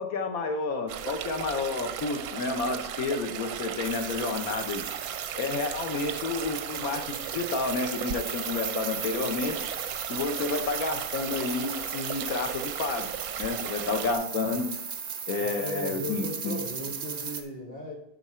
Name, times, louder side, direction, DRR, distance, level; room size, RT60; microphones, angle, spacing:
voice 1, 0.0-4.8 5.4-9.6 10.1-13.1 13.4-14.7 15.3-16.6, left 4 dB, 60° left, 5 dB, 1.3 m, -30 dB
sound 1, 0.9-14.2, right 10 dB, 70° right, 1.0 m, -36 dB
sound 2, 3.8-17.4, right 6 dB, 50° right, 0.6 m, -37 dB
voice 2, 15.4-17.9, left 1 dB, 30° left, 0 dB, 1.9 m, -37 dB
11.0 x 4.1 x 4.3 m, 0.83 s
omnidirectional pair, 1.8 m